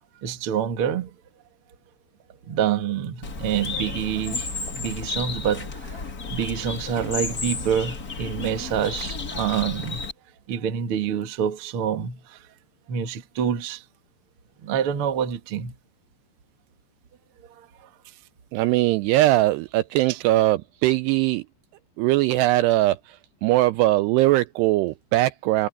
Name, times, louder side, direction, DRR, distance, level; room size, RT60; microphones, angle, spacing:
voice 1, 0.2-1.1 2.5-6.0 6.3-10.0 10.5-12.4 12.9-13.8 14.6-15.7 20.1-20.2, right 8 dB, 55° right, 1.5 m, -27 dB
Bird, 3.2-10.1, left 4 dB, 45° left, 1.2 m, -32 dB
voice 2, 18.5-21.4 22.0-23.0 23.4-25.7, right 17 dB, 85° right, 2.4 m, -20 dB
omnidirectional pair, 5.2 m